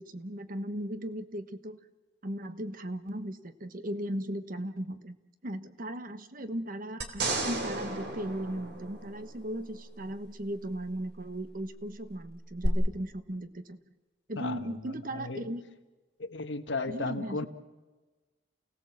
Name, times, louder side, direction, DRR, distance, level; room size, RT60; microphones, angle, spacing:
voice 1, 0.0-1.8 2.2-5.2 5.4-13.8 14.3-15.6 16.9-17.5, right 1 dB, 50° right, 10 dB, 1.2 m, -37 dB
sound 1, 7.0-9.5 12.6-12.7, right 2 dB, 65° right, 3.1 m, -33 dB
voice 2, 14.4-15.5 16.2-17.5, left 3 dB, 80° left, 8 dB, 1.5 m, -35 dB
29.0 x 17.5 x 7.4 m, 1.2 s
head